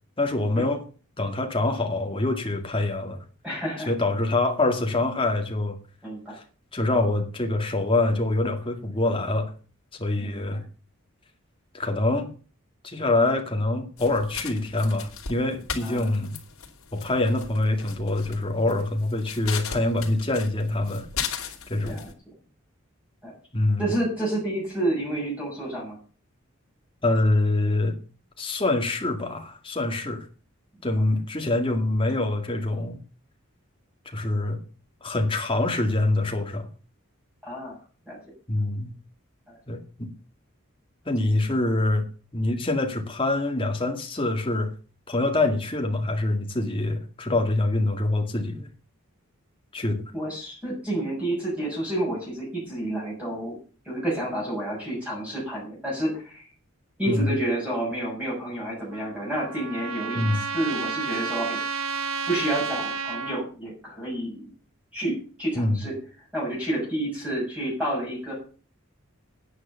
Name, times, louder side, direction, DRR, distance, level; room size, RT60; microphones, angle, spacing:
voice 1, 0.2-0.8 1.2-3.2 3.9-5.8 6.3-6.4 6.7-9.5 9.9-10.6 11.7-12.3 12.8-16.3 16.9-21.1 21.7-22.0 23.5-23.9 27.0-28.0 28.4-30.3 30.8-33.0 34.1-34.6 35.0-36.7 38.5-38.9 39.7-40.1 41.1-42.1 42.3-44.7 45.1-48.7 49.7-50.1 57.0-57.3 60.1-60.4 65.5-65.8, left 2 dB, 25° left, 3 dB, 2.1 m, -25 dB
voice 2, 3.4-3.9 6.0-6.4 10.2-10.6 15.8-16.1 21.8-22.1 23.2-23.4 23.8-26.0 37.4-37.8 38.1-38.2 39.5-39.6 50.1-53.6 53.8-56.5 57.0-61.9 62.3-64.4 64.9-66.0 66.3-68.3, right 1 dB, 5° right, -4 dB, 6.9 m, -29 dB
sound 1, 14.0-22.1, left 7 dB, 85° left, 2.8 m, -37 dB
Trumpet, 58.9-63.4, right 5 dB, 75° right, 1.3 m, -31 dB
9.7 x 9.5 x 7.0 m, 0.39 s
head